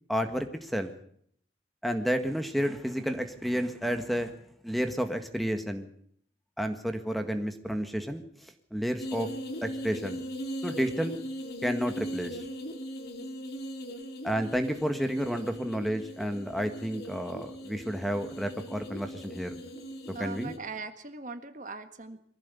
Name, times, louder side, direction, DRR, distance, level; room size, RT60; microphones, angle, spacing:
voice 1, 0.1-0.9 1.8-4.3 4.6-5.9 6.6-9.3 9.6-10.2 10.6-11.2 11.6-12.4 14.2-19.6 20.1-20.5, equal, ahead, 7 dB, 1.6 m, -31 dB
sound 1, 9.0-20.6, equal, 60° left, 2.9 m, -39 dB
voice 2, 20.1-22.2, right 4 dB, 45° right, 8 dB, 1.7 m, -40 dB
23.0 x 15.5 x 8.4 m, 0.66 s
head